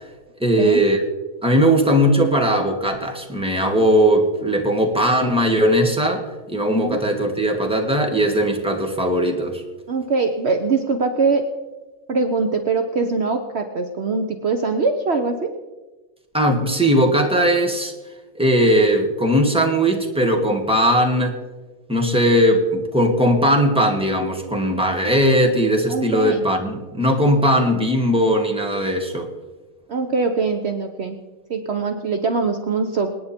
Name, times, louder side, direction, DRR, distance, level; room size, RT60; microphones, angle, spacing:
voice 1, 0.4-1.0 1.4-9.6 16.3-17.9 18.4-21.4 21.9-29.3, equal, 5° right, 2 dB, 1.7 m, -19 dB
voice 2, 9.9-11.5 12.1-15.5 25.9-26.4 29.9-31.2 31.5-33.1, right 4 dB, 55° right, 6 dB, 1.1 m, -22 dB
26.5 x 9.5 x 4.4 m, 1.2 s
omnidirectional pair, 1.5 m